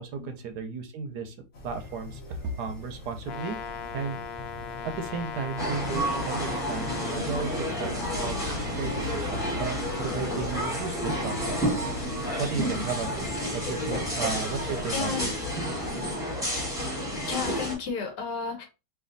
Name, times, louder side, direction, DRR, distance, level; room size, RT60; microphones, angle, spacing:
voice 1, 0.0-1.4 1.6-4.3 4.8-11.8 12.4-15.3, right 5 dB, 70° right, 1.1 m, -35 dB
voice 2, 1.1-1.4 6.4-6.6 7.0-7.4 7.9-8.1 13.2-13.3 14.0-14.1 14.9-15.3 17.2-18.6, left 6 dB, 70° left, 1.5 m, -35 dB
sound 1, 1.5-16.2, left 1 dB, 50° left, 1.1 m, -43 dB
Brass instrument, 3.2-7.3, left 6 dB, 90° left, 1.3 m, -38 dB
sound 2, 5.6-17.7, equal, ahead, 1.2 m, -30 dB
3.3 x 2.7 x 3.8 m
omnidirectional pair, 1.9 m